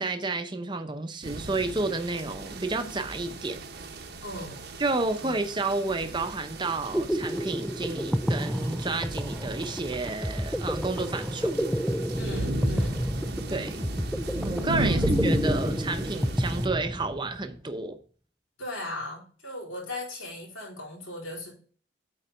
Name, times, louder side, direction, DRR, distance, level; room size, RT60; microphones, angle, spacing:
voice 1, 0.0-3.6 4.8-11.6 13.5-13.9 14.4-18.0, right 3 dB, 25° right, 0.7 m, -31 dB
sound 1, 1.2-16.7, right 1 dB, 55° right, 0.9 m, -35 dB
voice 2, 4.2-4.6 5.2-5.4 12.2-13.1 13.7-14.0 14.9-15.0 18.6-21.5, left 1 dB, 85° left, 3.8 m, -38 dB
sound 2, 6.6-17.4, equal, ahead, 0.3 m, -30 dB
8.8 x 4.0 x 5.1 m
head